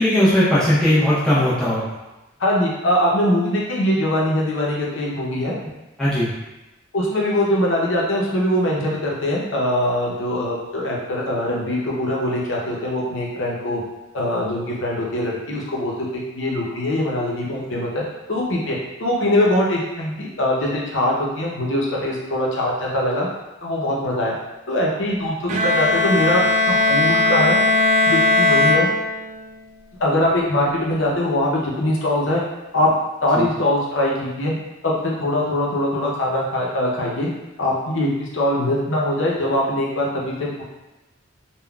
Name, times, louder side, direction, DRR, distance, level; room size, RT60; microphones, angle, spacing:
voice 1, 0.0-1.9 6.0-6.3 33.4-33.5, left 1 dB, 5° left, -11 dB, 0.6 m, -18 dB
voice 2, 2.4-5.5 6.9-13.8 14.1-15.9 16.3-18.0 18.3-23.3 23.6-24.4 24.7-27.6 28.1-28.9 30.0-32.4 32.7-32.9 33.2-34.5 34.8-37.3 37.6-40.6, left 1 dB, 70° left, -3 dB, 0.7 m, -22 dB
Bowed string instrument, 25.5-29.5, left 2 dB, 35° right, 0.3 m, -18 dB
3.7 x 2.2 x 2.3 m, 1.0 s
head